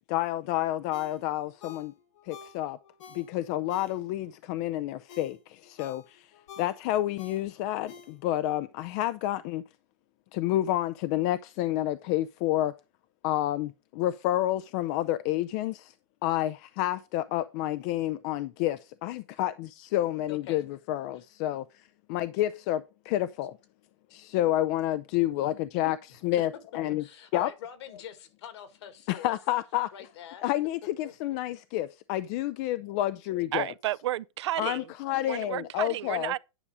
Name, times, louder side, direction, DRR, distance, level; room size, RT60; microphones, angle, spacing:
voice 1, 0.1-1.9 2.3-2.8 3.1-6.3 6.6-9.6 10.3-12.7 13.2-15.9 16.2-21.8 22.1-23.5 24.1-27.0 27.3-27.5 29.1-29.9 30.4-33.7 34.6-36.3, left 14 dB, 35° left, 0.4 m, -29 dB
Ringtone, 0.9-4.4 4.8-8.5 8.9-9.0, left 7 dB, 85° left, 2.7 m, -50 dB
voice 2, 20.3-20.6 27.0-29.3 29.9-30.4 31.0-31.1, left 10 dB, 60° left, 2.1 m, -44 dB
voice 3, 33.5-34.8 35.3-36.4, right 14 dB, 65° right, 0.4 m, -32 dB
9.9 x 5.3 x 4.8 m
supercardioid pair, 155°, 16 cm